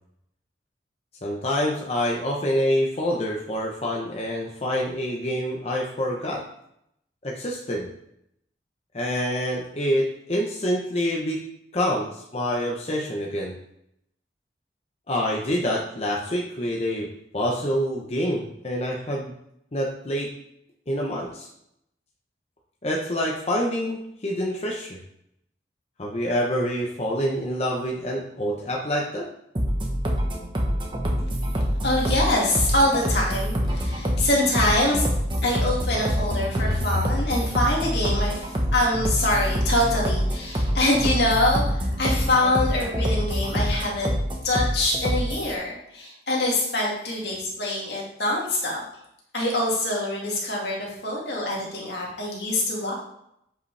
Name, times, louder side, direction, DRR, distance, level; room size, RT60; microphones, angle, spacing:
voice 1, 1.2-6.4 7.2-7.9 8.9-11.4 11.7-13.5 15.1-17.1 17.3-19.3 19.7-20.3 20.9-21.5 22.8-25.0 26.0-29.3, equal, 35° left, -2 dB, 0.9 m, -26 dB
sound 1, 29.6-45.5, equal, 30° right, 1.1 m, -25 dB
voice 2, 31.8-35.1 35.4-44.1 44.4-48.8 49.3-52.9, left 1 dB, 70° left, -3 dB, 2.2 m, -24 dB
7.9 x 5.4 x 3.3 m, 0.77 s
head